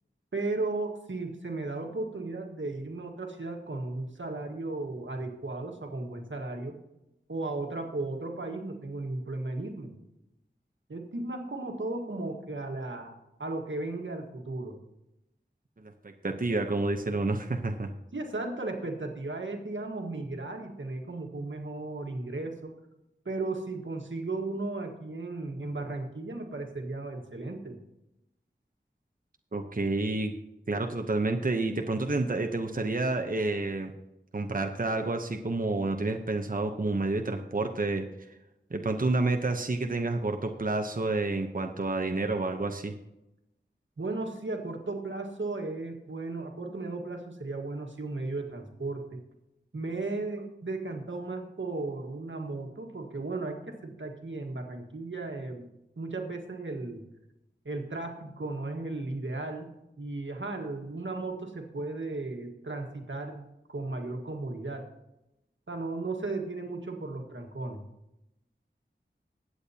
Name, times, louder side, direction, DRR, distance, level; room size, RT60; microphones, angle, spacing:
voice 1, 0.3-6.8 7.3-9.9 10.9-14.7 18.1-22.7 23.2-27.8 44.0-49.2 49.7-55.7 56.0-57.0 57.6-64.8 65.7-67.8, right 2 dB, 90° right, 2 dB, 1.5 m, -35 dB
voice 2, 16.2-17.9 29.5-30.3 30.7-33.9 34.3-38.4 38.7-42.9, right 2 dB, 45° right, 4 dB, 0.8 m, -29 dB
20.5 x 8.5 x 2.8 m, 0.91 s
wide cardioid pair, 45°, 19 cm